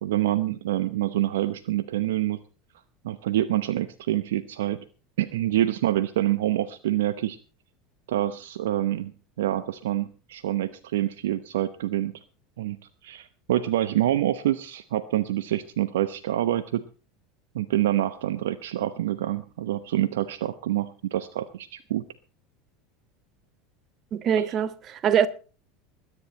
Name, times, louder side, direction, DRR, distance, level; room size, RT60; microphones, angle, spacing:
voice 1, 0.0-2.4 3.0-4.8 5.2-7.4 8.1-9.1 9.4-12.1 12.6-12.8 13.0-16.8 17.5-22.0 24.4-24.5, right 13 dB, 70° right, 0.8 m, -26 dB
voice 2, 24.1-25.3, right 8 dB, 40° right, 1.3 m, -23 dB
21.0 x 9.9 x 4.3 m
figure-of-eight pair, 75°, 0 cm